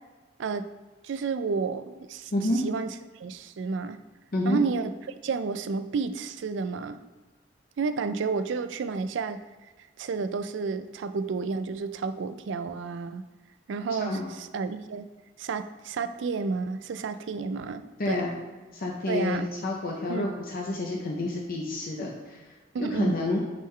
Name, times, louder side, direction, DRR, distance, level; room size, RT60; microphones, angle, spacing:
voice 1, 1.0-2.3 2.6-2.9 3.2-4.0 4.4-4.9 5.2-7.0 7.8-9.4 10.0-13.2 13.7-15.1 15.4-18.2 19.1-19.5 20.1-20.3 22.7-23.2, right 4 dB, 65° right, 11 dB, 0.4 m, -31 dB
voice 2, 18.0-18.3 18.7-23.4, left 2 dB, 45° left, -1 dB, 0.7 m, -29 dB
8.3 x 3.8 x 3.2 m, 1.3 s
head